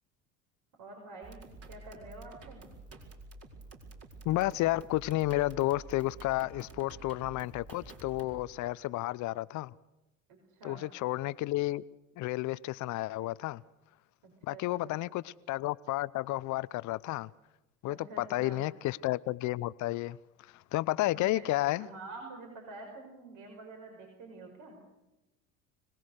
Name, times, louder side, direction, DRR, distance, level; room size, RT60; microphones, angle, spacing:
voice 1, 0.8-1.4 1.7-2.6 10.3-10.9 14.2-15.0 17.9-18.6 21.1-21.5 21.8-24.8, right 3 dB, 50° right, 1 dB, 5.7 m, -48 dB
sound 1, 1.2-8.4, right 2 dB, 35° right, 4.7 m, -50 dB
voice 2, 4.2-9.7 10.6-11.8 12.2-13.6 14.4-17.3 17.8-20.2 20.5-21.9, left 17 dB, 45° left, 20 dB, 0.7 m, -31 dB
25.5 x 18.5 x 6.6 m, 0.99 s
hypercardioid pair, 80°, 40 cm